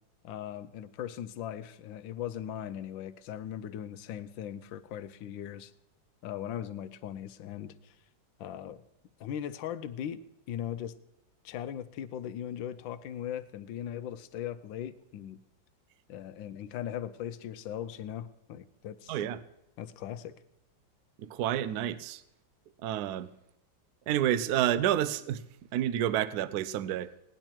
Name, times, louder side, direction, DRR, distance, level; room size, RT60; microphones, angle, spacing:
voice 1, 0.2-5.7 6.2-8.0 8.4-8.8 9.2-10.2 10.5-11.0 11.4-15.4 16.1-19.1 19.8-20.3, left 10 dB, 85° left, 13 dB, 1.4 m, -39 dB
voice 2, 19.1-19.4 21.2-22.2 22.8-23.3 24.1-25.4 25.7-27.1, right 11 dB, 70° right, 16 dB, 1.0 m, -29 dB
18.0 x 10.5 x 4.5 m, 0.83 s
omnidirectional pair, 2.1 m